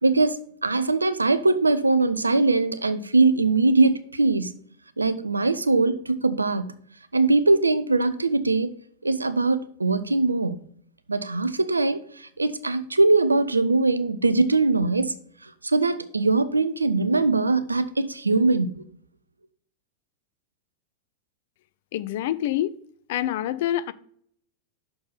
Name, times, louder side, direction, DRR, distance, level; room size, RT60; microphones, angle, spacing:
voice 1, 0.0-4.6 5.0-6.8 7.1-8.7 9.0-10.6 11.1-15.1 15.6-18.8, right 3 dB, 85° right, 0.5 m, -21 dB
voice 2, 21.9-22.7 23.1-23.9, left 12 dB, 55° left, 0.4 m, -26 dB
6.4 x 4.6 x 5.6 m
figure-of-eight pair, 90°, 0 cm